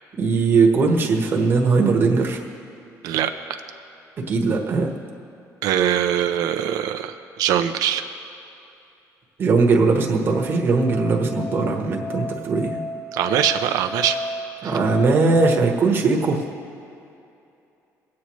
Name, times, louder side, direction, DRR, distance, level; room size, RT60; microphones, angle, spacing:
voice 1, 0.1-2.4 4.3-4.9 9.4-12.8 14.6-16.4, right 4 dB, 35° right, 1 dB, 1.3 m, -19 dB
voice 2, 5.6-8.0 13.1-14.2 14.6-14.8, right 10 dB, 80° right, 7 dB, 0.6 m, -22 dB
Musical instrument, 9.9-15.5, left 2 dB, 15° left, 0.8 m, -32 dB
22.5 x 8.5 x 3.1 m, 2.7 s
cardioid pair, 150°, 6 cm